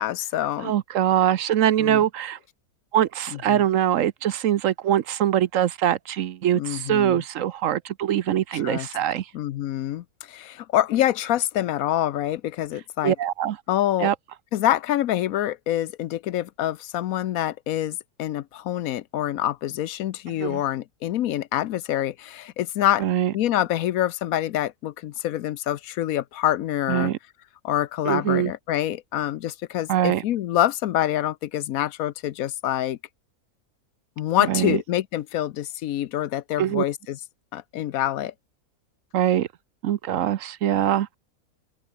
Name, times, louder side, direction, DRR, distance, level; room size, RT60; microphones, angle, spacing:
voice 1, 0.0-0.7 1.8-2.0 3.5-3.6 6.5-7.2 8.5-8.9 9.3-13.1 13.7-14.1 14.5-23.1 23.3-27.1 27.6-33.0 34.2-37.2 37.5-38.3, left 12 dB, 75° left, 1.1 m, -26 dB
voice 2, 0.6-2.4 2.9-9.3 13.0-13.6 14.0-14.1 20.4-20.6 23.0-23.3 26.9-27.2 28.0-28.5 29.9-30.2 34.5-34.8 36.6-36.8 39.1-39.5 39.8-41.1, right 11 dB, 65° right, 1.0 m, -23 dB
open air
omnidirectional pair, 1.5 m